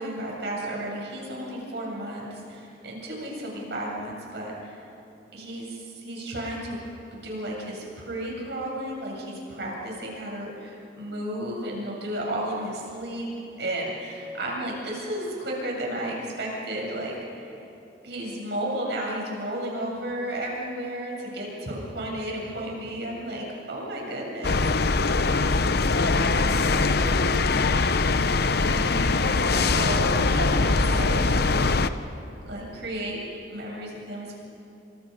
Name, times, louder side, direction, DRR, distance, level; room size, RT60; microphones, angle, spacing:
voice 1, 0.0-4.8 5.3-6.8 7.1-13.3 13.6-17.6 18.0-25.0 29.7-31.7 32.5-33.2 33.5-34.4, right 1 dB, 70° right, -2 dB, 7.7 m, -33 dB
sound 1, 24.4-31.9, left 3 dB, 60° left, 0.8 m, -22 dB
voice 2, 25.9-27.4 28.6-30.7, left 1 dB, 85° left, 2 dB, 5.2 m, -33 dB
29.0 x 26.5 x 5.4 m, 2.9 s
head